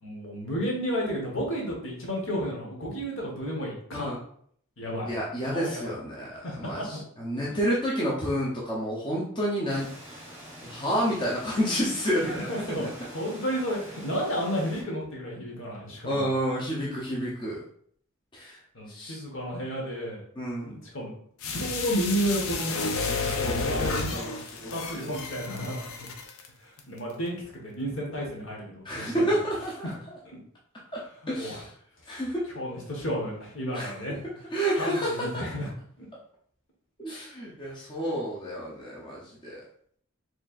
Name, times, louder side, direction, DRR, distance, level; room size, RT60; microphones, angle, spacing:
voice 1, 0.0-4.1 4.8-5.1 5.4-5.9 6.4-7.0 7.3-7.5 12.2-12.8 13.1-16.3 18.7-20.2 20.6-21.1 21.5-22.8 23.2-25.9 26.6-29.1 29.8-30.0 31.4-31.6 32.1-32.2 32.5-34.2 34.8-35.7 36.0-36.1, equal, 65° left, -2 dB, 1.2 m, -32 dB
voice 2, 5.0-10.2 10.6-12.5 12.8-12.9 16.1-17.6 18.3-18.6 18.9-19.2 20.4-20.8 23.1-24.3 24.6-25.1 28.8-29.9 30.9-31.0 31.3-31.7 32.1-32.5 33.7-33.9 34.5-35.6 37.0-39.6, equal, 20° left, -5 dB, 0.6 m, -30 dB
sound 1, 9.7-14.8, equal, 10° right, 1.0 m, -46 dB
sound 2, 21.4-26.5 26.8-26.9, left 4 dB, 80° left, 0.6 m, -31 dB
4.2 x 3.1 x 2.4 m, 0.62 s
head